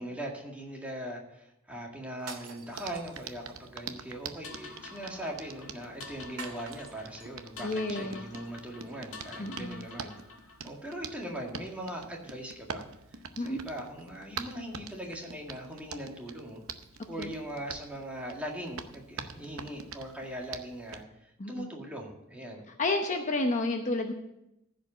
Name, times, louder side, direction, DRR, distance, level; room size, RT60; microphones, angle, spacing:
voice 1, 0.0-10.1 10.6-12.8 13.1-16.6 17.1-22.6, right 1 dB, 5° right, -1 dB, 1.9 m, -40 dB
sound 1, 2.2-3.7 6.4-7.3, right 5 dB, 90° right, 1.9 m, -46 dB
Hands, 2.7-21.0, right 6 dB, 70° right, 0.7 m, -45 dB
sound 2, 4.4-10.7, left 3 dB, 65° left, 1.7 m, -48 dB
voice 2, 7.6-8.2 9.4-9.9 13.4-13.6 17.2-17.3 21.4-21.7 22.8-24.1, left 2 dB, 35° left, 4 dB, 0.8 m, -30 dB
15.0 x 5.2 x 7.4 m, 0.85 s
head